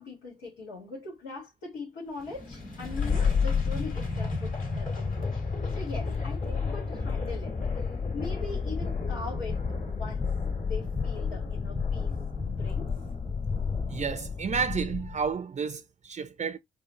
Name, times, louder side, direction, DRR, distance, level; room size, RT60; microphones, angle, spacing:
voice 1, 0.0-5.3 5.7-9.6 9.9-10.3 10.6-12.1 12.4-12.9, left 3 dB, 85° left, 1.8 m, -41 dB
sound 1, 2.2-15.3, left 5 dB, 45° left, 2.3 m, -31 dB
voice 2, 13.9-16.6, right 6 dB, 40° right, 0.6 m, -31 dB
4.9 x 2.4 x 2.8 m
hypercardioid pair, 50°, 19 cm